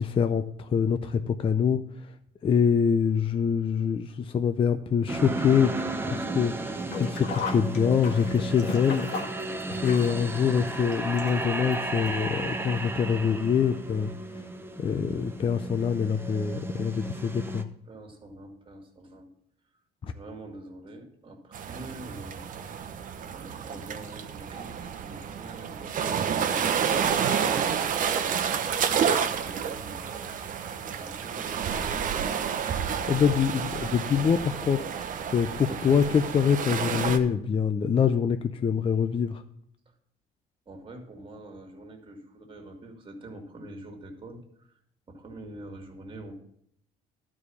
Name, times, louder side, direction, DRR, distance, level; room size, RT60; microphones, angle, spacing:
voice 1, 0.0-2.1 2.4-9.1 9.8-14.1 14.8-17.7 20.0-20.1 33.1-39.4, left 7 dB, 30° left, 9 dB, 0.5 m, -25 dB
sound 1, 5.1-17.6, right 2 dB, 15° right, 0.8 m, -34 dB
Sink (filling or washing), 6.8-11.7 12.1-12.2 13.2-13.3 13.6-13.7, left 4 dB, 80° left, 1.7 m, -36 dB
voice 2, 17.9-19.3 20.1-22.5 23.3-28.5 28.8-30.3 31.0-32.4 33.0-33.4 34.0-34.3 40.7-44.7 45.1-46.3, right 1 dB, 30° right, 4 dB, 2.1 m, -45 dB
sound 2, 21.5-37.2, right 7 dB, 50° right, 0.9 m, -30 dB
12.0 x 4.9 x 6.9 m, 0.71 s
cardioid pair, 110°, 17 cm